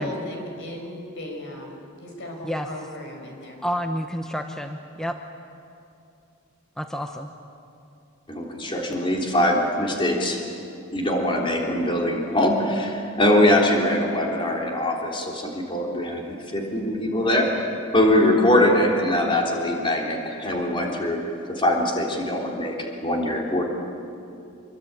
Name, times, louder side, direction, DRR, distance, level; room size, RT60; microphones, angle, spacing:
voice 1, 0.0-3.6, left 1 dB, 60° left, 2 dB, 5.7 m, -37 dB
voice 2, 3.6-5.2 6.8-7.3, equal, 5° left, 4 dB, 0.9 m, -29 dB
voice 3, 8.3-10.4 10.9-17.5 17.9-21.2 21.6-23.6, left 1 dB, 25° left, 0 dB, 3.5 m, -22 dB
26.0 x 23.5 x 8.9 m, 2.7 s
head